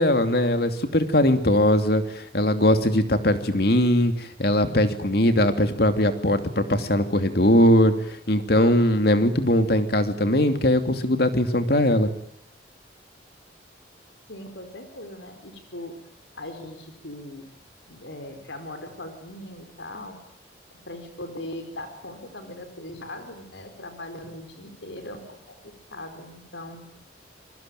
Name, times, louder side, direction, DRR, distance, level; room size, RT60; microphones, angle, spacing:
voice 1, 0.0-7.9 8.3-12.1, left 1 dB, 55° left, 8 dB, 2.8 m, -20 dB
voice 2, 14.3-16.0 16.3-17.4 17.9-20.2 20.9-26.9, left 1 dB, 85° left, 7 dB, 4.7 m, -39 dB
28.0 x 23.0 x 9.2 m, 0.73 s
head